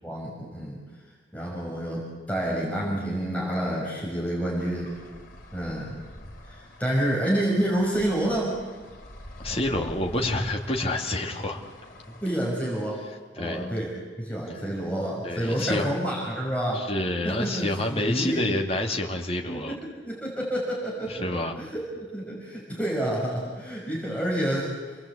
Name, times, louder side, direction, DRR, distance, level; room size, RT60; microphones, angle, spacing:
voice 1, 0.0-0.8 1.3-4.9 5.5-5.9 6.4-8.6 9.5-9.6 12.2-13.0 13.4-13.9 14.2-16.9 17.2-18.4 19.5-19.8 20.1-25.0, right 1 dB, 10° left, -3 dB, 5.9 m, -29 dB
sound 1, 4.6-12.3, left 1 dB, 45° left, 3.9 m, -46 dB
voice 2, 9.4-11.6 13.3-13.7 15.2-15.9 16.7-19.8 21.1-21.5, left 1 dB, 30° left, 1 dB, 2.4 m, -28 dB
28.5 x 19.5 x 8.3 m, 1.4 s
head